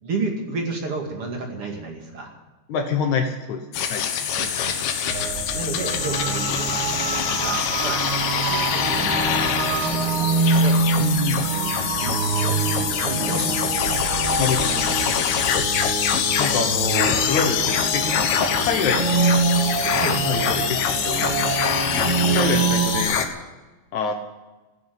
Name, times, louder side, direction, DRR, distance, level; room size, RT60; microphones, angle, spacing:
voice 1, 0.0-2.3 4.3-5.2 5.5-6.9 7.3-8.1 8.4-9.4 9.7-10.8 12.0-14.5 20.0-20.2, right 3 dB, 40° right, 1 dB, 2.3 m, -32 dB
voice 2, 2.7-3.6 3.9-4.1 11.0-11.4 14.4-15.3 16.4-19.2 20.3-21.3 22.3-23.2 23.9-24.1, left 6 dB, 85° left, 3 dB, 1.7 m, -26 dB
sound 1, 3.7-23.3, left 8 dB, 65° left, 3.0 m, -24 dB
sound 2, 5.1-23.0, right 4 dB, 60° right, 4.6 m, -25 dB
15.5 x 9.9 x 9.5 m, 1.1 s
omnidirectional pair, 5.5 m